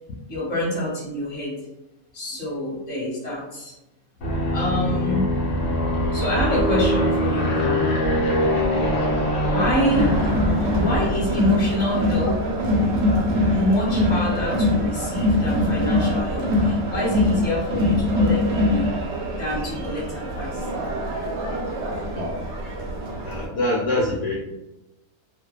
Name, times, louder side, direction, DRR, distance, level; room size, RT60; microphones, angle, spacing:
voice 1, 0.3-1.5 2.1-3.7 4.5-5.3 6.1-7.8 9.5-10.2 10.7-12.4 13.5-19.0 19.4-20.7, left 1 dB, 30° left, -6 dB, 1.2 m, -26 dB
Aircraft, 4.2-11.5, equal, 50° left, 1.0 m, -23 dB
voice 2, 8.7-9.2 22.1-22.6 23.2-24.3, left 1 dB, 75° left, -5 dB, 1.1 m, -26 dB
Crowd, 9.9-23.5, left 1 dB, 60° right, 0.8 m, -23 dB
2.6 x 2.2 x 2.2 m, 0.91 s
omnidirectional pair, 1.6 m